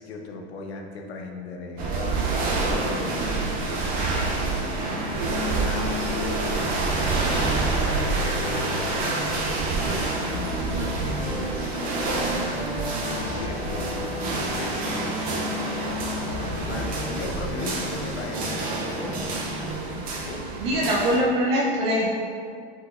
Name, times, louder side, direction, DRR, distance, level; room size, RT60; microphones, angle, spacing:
voice 1, 0.0-2.2 2.4-4.2 4.5-12.7 12.9-20.4, left 3 dB, 85° left, 3 dB, 0.7 m, -38 dB
sound 1, 1.8-21.2, right 2 dB, 30° right, 0.5 m, -27 dB
sound 2, 7.2-19.1, left 2 dB, 30° left, 0.7 m, -36 dB
voice 2, 20.6-22.1, equal, 65° right, -5 dB, 0.8 m, -23 dB
5.4 x 3.9 x 2.4 m, 2.2 s
supercardioid pair, 140°, 31 cm